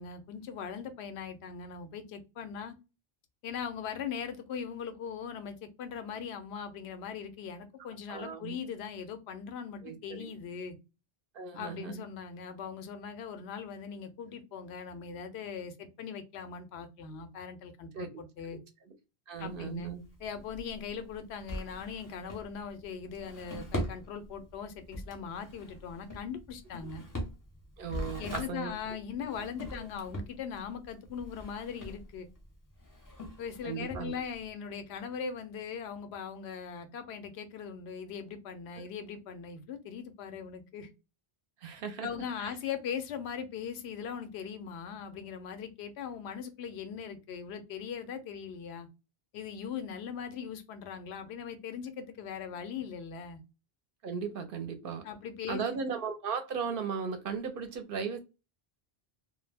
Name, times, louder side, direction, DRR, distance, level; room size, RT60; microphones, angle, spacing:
voice 1, 0.0-2.7 3.4-10.8 11.5-18.6 19.4-19.9 20.2-27.0 28.2-32.3 33.4-40.9 42.0-48.9 49.3-53.4 55.0-55.6, left 7 dB, 90° left, 0.8 m, -40 dB
voice 2, 8.1-8.6 9.8-10.3 11.3-12.0 17.9-18.2 18.5-18.6 18.8-18.9 19.3-20.0 27.8-28.7 29.8-29.9 33.6-34.2 41.6-42.1 42.4-42.5 54.0-55.0 55.5-58.2, right 6 dB, 65° right, 0.7 m, -37 dB
Drawer open or close, 19.3-34.5, left 1 dB, 25° left, 0.5 m, -42 dB
2.2 x 2.0 x 3.2 m
omnidirectional pair, 1.0 m